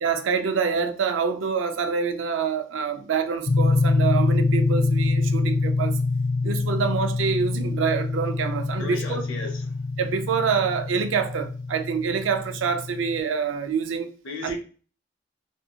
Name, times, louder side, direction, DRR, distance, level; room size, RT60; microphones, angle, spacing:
voice 1, 0.0-5.9 6.4-9.2 10.0-14.1 14.4-14.6, right 6 dB, 85° right, 0.4 m, -26 dB
sound 1, 3.5-13.2, left 3 dB, 50° left, 0.4 m, -25 dB
voice 2, 8.8-9.7 14.2-14.6, left 3 dB, 90° left, 0.7 m, -35 dB
2.7 x 2.6 x 2.3 m
head